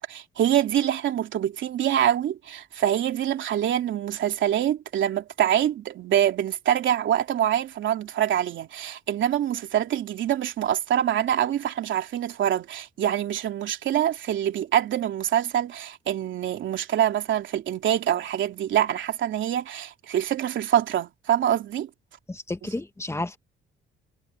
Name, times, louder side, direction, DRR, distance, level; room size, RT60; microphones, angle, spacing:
voice 1, 0.0-21.9, right 10 dB, 70° right, 3.3 m, -25 dB
voice 2, 22.3-23.4, left 2 dB, 15° left, 1.8 m, -31 dB
cardioid pair, 90°, 20 cm